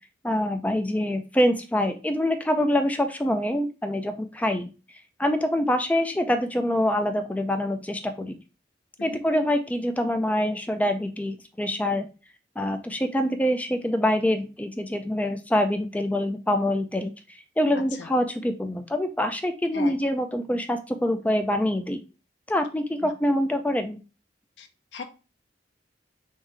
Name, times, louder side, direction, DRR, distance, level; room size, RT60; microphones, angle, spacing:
voice 1, 0.2-4.7 5.2-8.4 9.0-12.1 12.6-17.1 17.6-22.0 22.5-24.0, left 1 dB, 10° left, 7 dB, 0.4 m, -25 dB
voice 2, 17.7-18.1 19.7-20.0 23.0-23.1 24.6-24.7 24.9-25.0, left 4 dB, 80° left, 7 dB, 0.6 m, -38 dB
3.6 x 2.7 x 3.2 m, 0.32 s
head